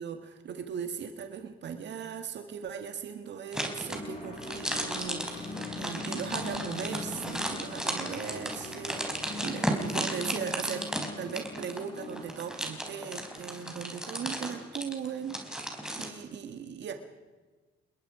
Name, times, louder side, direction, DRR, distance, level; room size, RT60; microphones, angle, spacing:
voice 1, 0.0-10.9 11.2-15.4 16.0-16.9, right 7 dB, 60° right, 6 dB, 1.9 m, -38 dB
sound 1, 3.5-16.1, right 1 dB, 5° right, 4.3 m, -35 dB
sound 2, 3.9-13.9, left 3 dB, 45° left, 6.3 m, -42 dB
28.5 x 21.5 x 5.0 m, 1.3 s
cardioid pair, 90°, 20 cm